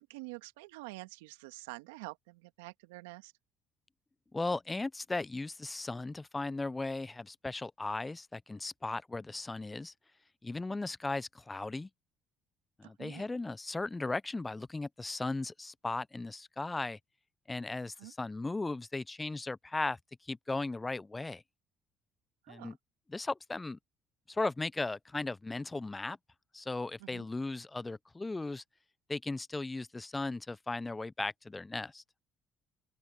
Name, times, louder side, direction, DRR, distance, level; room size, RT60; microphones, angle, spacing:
voice 1, 0.0-3.3 12.8-13.3 18.0-18.1 22.4-22.8 27.0-27.3, right 23 dB, 85° right, 1.9 m, -47 dB
voice 2, 4.3-9.9 10.4-11.9 12.8-17.0 17.5-20.0 20.3-21.4 22.5-22.8 23.1-23.8 24.3-26.2 26.5-28.6 29.1-32.0, left 3 dB, 20° left, 0.6 m, -37 dB
open air
hypercardioid pair, 60°, 0 cm